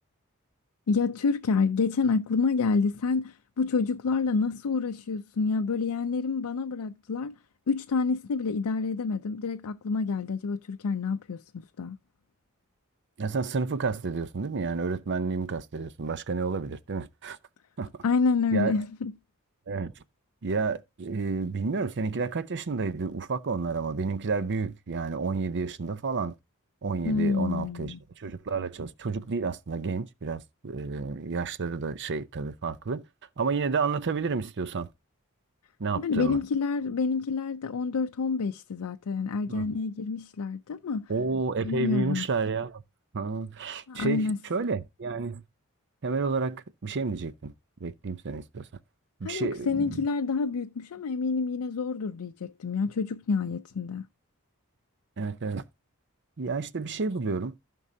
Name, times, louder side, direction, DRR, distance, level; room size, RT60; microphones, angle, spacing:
voice 1, 0.9-7.3 7.7-11.4 11.8-12.0 18.0-19.1 27.0-28.0 36.0-41.1 41.6-42.2 43.9-44.4 49.2-54.0, left 4 dB, 90° left, 0.5 m, -28 dB
voice 2, 13.2-17.4 17.8-17.9 18.5-18.8 19.7-20.0 20.4-26.3 26.8-33.0 33.4-34.9 35.8-36.4 39.5-39.8 41.1-42.8 43.1-45.4 46.0-47.5 47.8-48.7 49.2-50.0 55.2-55.6 56.4-57.5, right 4 dB, 55° right, 0.6 m, -30 dB
15.5 x 5.3 x 2.7 m
head